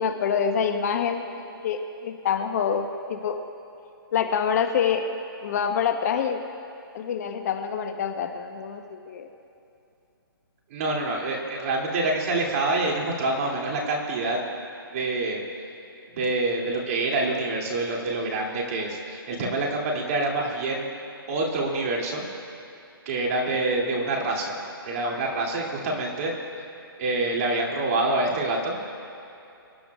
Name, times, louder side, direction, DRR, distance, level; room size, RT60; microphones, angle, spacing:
voice 1, 0.0-3.4 4.1-5.1 5.4-6.4 6.9-9.3, left 7 dB, 45° left, 6 dB, 1.0 m, -26 dB
voice 2, 10.7-14.4 14.9-15.4 16.1-20.9 21.3-22.3 23.1-26.3 27.0-28.8, right 2 dB, 40° right, -2 dB, 2.7 m, -26 dB
25.5 x 12.0 x 2.4 m, 2.7 s
hypercardioid pair, 150°, 12 cm